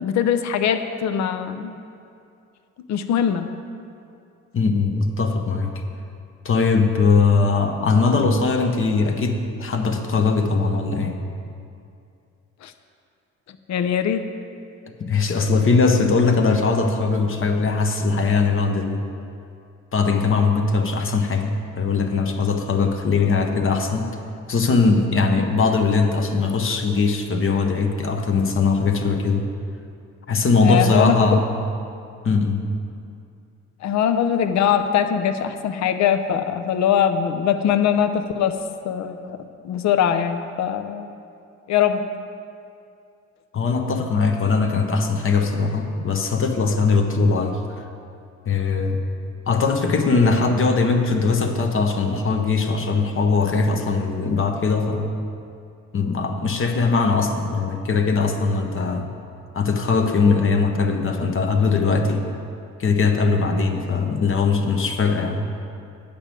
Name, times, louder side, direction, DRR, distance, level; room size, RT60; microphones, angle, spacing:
voice 1, 0.0-1.8 2.9-3.5 12.6-12.7 13.5-14.3 30.6-31.4 33.8-38.6 38.8-41.1 41.7-42.0, left 8 dB, 65° left, 9 dB, 0.6 m, -22 dB
voice 2, 4.5-5.7 6.4-11.2 15.0-19.0 19.9-24.1 24.5-29.5 30.3-31.5 32.2-32.6 43.5-47.8 48.5-49.0 49.5-55.1 55.9-59.1 59.5-62.2 62.8-65.4, left 4 dB, 45° left, 4 dB, 0.9 m, -20 dB
8.7 x 5.1 x 7.5 m, 2.5 s
cardioid pair, 90°, 30 cm